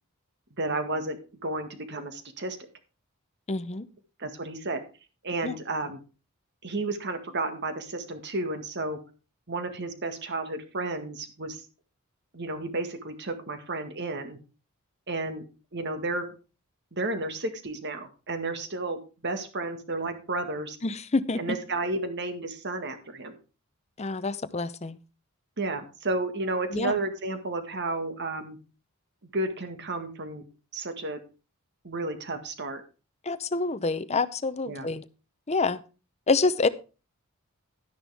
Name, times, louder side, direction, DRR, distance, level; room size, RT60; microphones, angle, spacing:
voice 1, 0.6-2.6 4.2-4.8 5.2-6.0 6.6-9.0 9.5-11.6 12.3-14.4 15.1-15.5 15.7-16.3 16.9-19.0 19.2-20.8 21.4-23.3 25.6-28.6 29.2-30.4 30.7-31.2 31.8-32.8 34.7-34.9, right 2 dB, 50° right, 7 dB, 1.7 m, -32 dB
voice 2, 3.5-3.9 5.4-5.6 20.8-21.4 24.0-25.0 26.7-27.0 33.2-35.0 35.5-35.8 36.3-36.7, left 3 dB, 30° left, 14 dB, 0.6 m, -27 dB
12.0 x 10.0 x 3.5 m, 0.33 s
head